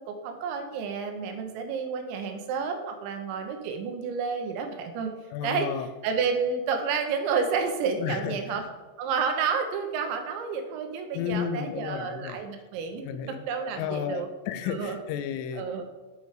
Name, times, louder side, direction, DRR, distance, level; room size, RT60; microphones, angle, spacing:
voice 1, 0.0-5.1 5.4-5.7 6.0-8.6 9.0-14.3 14.6-15.0 15.5-15.8, right 5 dB, 80° right, 5 dB, 2.7 m, -30 dB
voice 2, 5.3-5.9 8.0-8.7 11.1-12.4 13.0-13.4 13.8-15.8, left 8 dB, 85° left, 10 dB, 2.8 m, -33 dB
8.5 x 5.1 x 4.8 m, 1.2 s
omnidirectional pair, 5.9 m